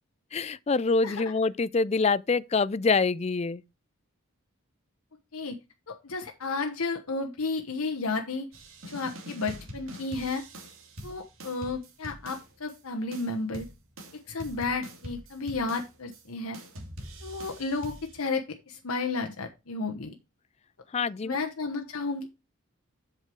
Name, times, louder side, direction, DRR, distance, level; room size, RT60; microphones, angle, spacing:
voice 1, 0.3-3.6 20.9-21.4, left 4 dB, 30° left, 0.4 m, -25 dB
voice 2, 5.9-8.5 8.9-10.4 11.0-13.6 14.3-16.6 17.2-20.1 21.2-22.3, left 3 dB, 85° left, 1.2 m, -32 dB
sound 1, 8.5-12.8 13.1-16.2 16.5-18.2, equal, 65° right, 2.7 m, -44 dB
7.9 x 6.7 x 4.6 m
head